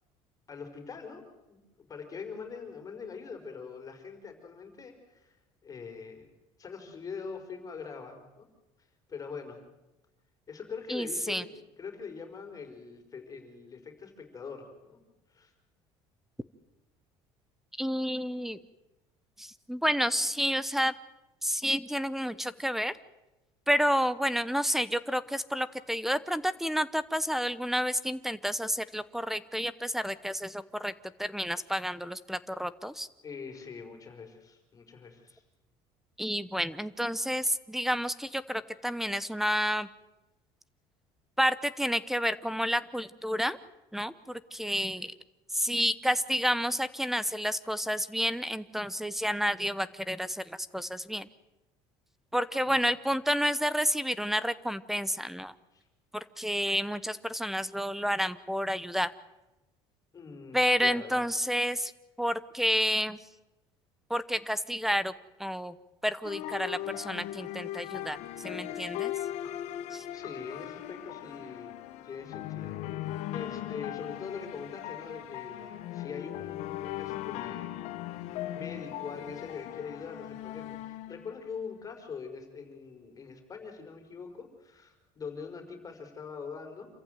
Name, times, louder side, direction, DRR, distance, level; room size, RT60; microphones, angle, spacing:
voice 1, 0.5-1.2 1.5-1.6 1.9-6.3 6.6-8.5 9.1-9.6 10.5-15.0 15.3-15.5 33.2-35.4 52.7-52.8 55.7-55.8 60.1-61.2 70.1-71.8 72.0-77.8 78.3-86.9, left 5 dB, 30° left, 4 dB, 5.1 m, -43 dB
voice 2, 10.9-11.4 17.8-18.6 19.4-20.9 21.4-22.9 23.7-30.9 31.2-33.1 36.2-39.9 41.4-43.6 43.9-45.1 45.5-51.3 52.3-55.5 56.1-59.1 60.5-61.9 62.2-63.3 64.1-65.1 65.4-65.7 66.0-69.1 69.9-70.0, equal, 5° right, 17 dB, 0.9 m, -30 dB
sound 1, 66.2-81.7, left 13 dB, 70° left, 1.4 m, -39 dB
27.5 x 14.5 x 9.3 m, 1.0 s
cardioid pair, 110°, 12 cm